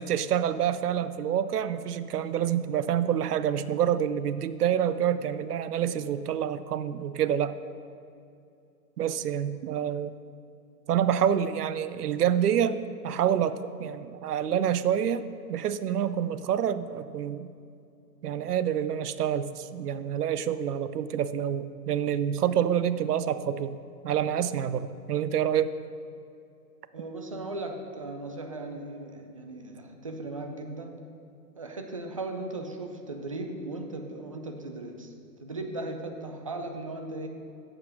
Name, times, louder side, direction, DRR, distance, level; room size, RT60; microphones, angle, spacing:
voice 1, 0.0-7.6 9.0-10.2 10.9-12.8 13.0-17.5 18.2-23.8 24.0-25.7, right 9 dB, 70° right, 14 dB, 0.6 m, -27 dB
voice 2, 26.9-31.0 31.6-35.1 35.4-37.3, right 2 dB, 25° right, 4 dB, 0.3 m, -37 dB
8.5 x 7.3 x 6.2 m, 2.6 s
hypercardioid pair, 130°, 49 cm